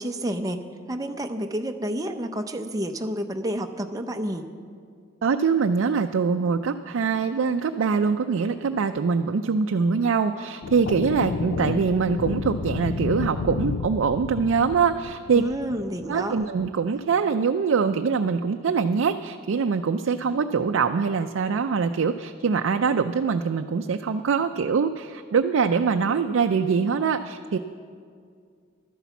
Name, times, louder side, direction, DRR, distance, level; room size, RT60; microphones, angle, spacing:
voice 1, 0.0-4.5 15.3-16.5, right 1 dB, 20° right, 6 dB, 0.6 m, -30 dB
voice 2, 5.2-15.4 16.1-27.6, right 5 dB, 80° right, 6 dB, 0.4 m, -23 dB
sound 1, 10.6-16.2, left 4 dB, 65° left, 0.4 m, -31 dB
12.0 x 10.0 x 7.1 m, 2.2 s
head